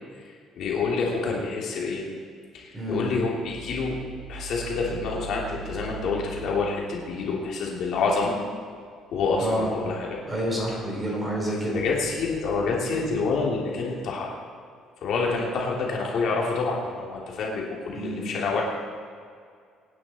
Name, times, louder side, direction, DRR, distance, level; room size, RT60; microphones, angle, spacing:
voice 1, 0.2-2.0 2.5-4.0 4.3-8.3 9.1-10.2 11.7-14.3 15.0-18.6, left 4 dB, 50° left, -3 dB, 3.2 m, -27 dB
voice 2, 2.7-3.1 9.4-9.7 10.3-11.8 17.9-18.4, right 1 dB, 15° right, -2 dB, 4.3 m, -29 dB
25.0 x 10.0 x 4.5 m, 2.1 s
cardioid pair, 180°, 0 cm